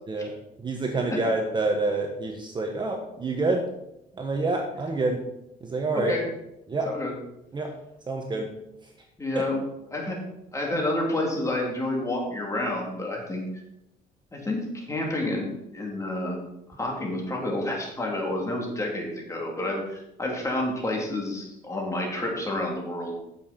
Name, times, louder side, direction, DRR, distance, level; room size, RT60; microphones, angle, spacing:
voice 1, 0.6-3.6 4.1-5.2 5.6-6.1 6.7-6.9 7.5-7.7 8.1-8.5 9.3-9.4, right 3 dB, 25° right, 2 dB, 1.3 m, -27 dB
voice 2, 9.2-9.6 9.9-10.2 10.5-13.4 14.3-15.5 15.7-16.4 16.8-23.2, left 1 dB, 20° left, -1 dB, 3.2 m, -29 dB
9.8 x 7.3 x 4.4 m, 0.83 s
cardioid pair, 110°, 17 cm